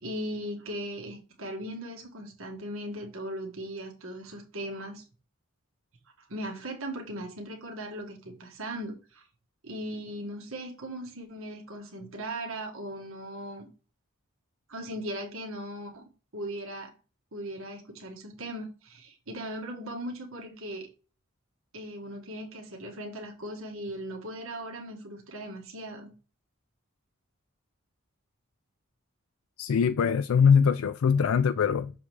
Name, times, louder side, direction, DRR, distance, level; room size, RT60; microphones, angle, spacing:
voice 1, 0.0-5.0 6.2-9.3 9.6-13.7 14.7-16.0 16.3-16.9 17.3-20.9 21.7-26.1, right 1 dB, 70° right, 1.7 m, -38 dB
voice 2, 29.6-31.9, left 6 dB, 75° left, 0.4 m, -22 dB
6.9 x 3.6 x 4.7 m
head